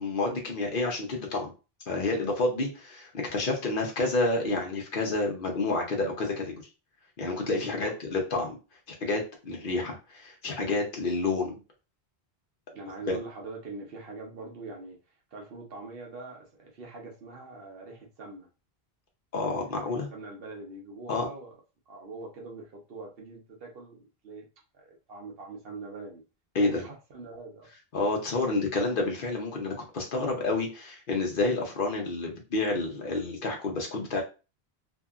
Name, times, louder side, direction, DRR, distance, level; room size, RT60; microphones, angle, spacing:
voice 1, 0.0-1.5 1.9-6.6 7.2-8.6 8.9-11.6 13.1-13.2 19.3-20.1 21.1-21.3 26.5-26.8 27.9-34.2, left 3 dB, 60° left, 0.9 m, -29 dB
voice 2, 12.7-15.0 15.3-18.5 19.6-21.6 21.9-24.5 24.7-26.2 26.6-27.7 28.4-28.5, right 3 dB, 65° right, 1.0 m, -43 dB
2.8 x 2.5 x 2.3 m
omnidirectional pair, 1.1 m